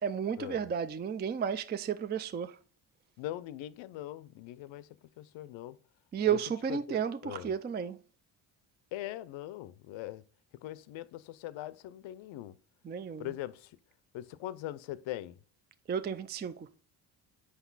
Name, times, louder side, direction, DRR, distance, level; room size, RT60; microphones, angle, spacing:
voice 1, 0.0-2.6 6.1-8.0 12.8-13.3 15.9-16.7, right 8 dB, 25° right, 0.4 m, -33 dB
voice 2, 3.2-4.9 5.2-5.8 6.7-7.5 8.9-10.2 10.6-12.5 13.2-13.7 14.1-15.3, left 14 dB, 80° left, 0.6 m, -41 dB
6.1 x 5.3 x 3.9 m
cardioid pair, 90°, 45 cm